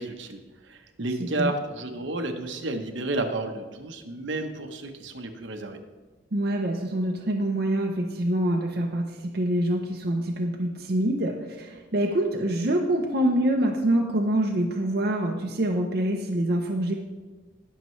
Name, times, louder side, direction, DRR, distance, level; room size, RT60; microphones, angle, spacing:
voice 1, 0.0-5.8, right 2 dB, 75° right, 5 dB, 1.1 m, -31 dB
voice 2, 1.2-1.5 6.3-16.9, right 1 dB, 55° right, 1 dB, 0.8 m, -25 dB
20.0 x 6.7 x 3.2 m, 1.3 s
head